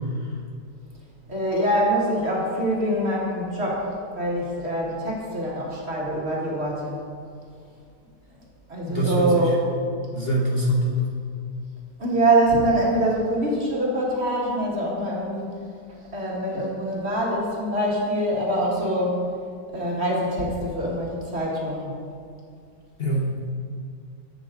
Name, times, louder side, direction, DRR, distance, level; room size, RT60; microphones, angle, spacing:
voice 1, 1.3-7.0 8.7-9.5 12.0-15.6 15.9-19.3 19.7-22.0, right 1 dB, 40° right, -4 dB, 2.2 m, -24 dB
voice 2, 8.8-9.5 10.1-11.1 23.0-23.3, equal, 40° left, -2 dB, 1.2 m, -24 dB
12.5 x 8.3 x 3.8 m, 2.3 s
omnidirectional pair, 1.7 m